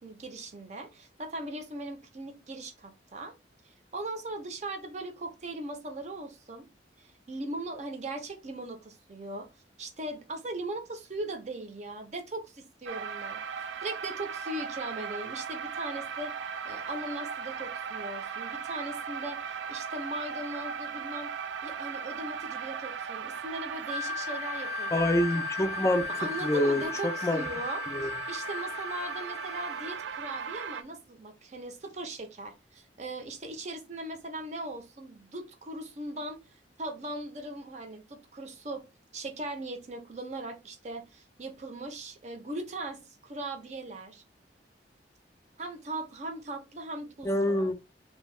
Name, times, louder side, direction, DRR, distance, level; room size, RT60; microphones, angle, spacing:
voice 1, 0.0-3.3 3.6-6.7 7.0-9.5 9.8-16.3 16.6-21.3 21.6-25.1 26.1-36.4 36.8-38.8 39.1-44.2 45.6-47.7, right 2 dB, 40° right, 0.6 m, -39 dB
sound 1, 12.9-30.8, right 7 dB, 90° right, 0.3 m, -38 dB
Wind instrument woodwind instrument, 23.8-30.0, left 9 dB, 70° right, 1.0 m, -37 dB
voice 2, 24.9-26.0 26.4-27.4 27.9-28.1 47.2-47.7, left 1 dB, 15° left, 0.3 m, -26 dB
2.7 x 2.1 x 3.1 m
head